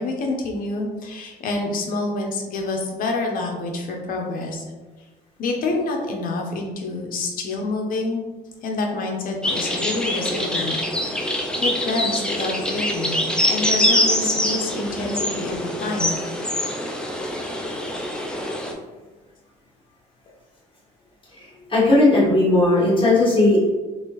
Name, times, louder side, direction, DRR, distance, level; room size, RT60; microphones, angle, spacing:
voice 1, 0.0-4.6 5.4-8.2 8.6-10.8 11.0-16.2, left 3 dB, 55° left, 1 dB, 0.7 m, -27 dB
sound 1, 9.4-18.7, left 1 dB, 5° left, 0.4 m, -24 dB
voice 2, 21.4-23.7, left 2 dB, 30° left, -6 dB, 1.3 m, -17 dB
3.2 x 2.6 x 3.0 m, 1.2 s
cardioid pair, 110°, 17 cm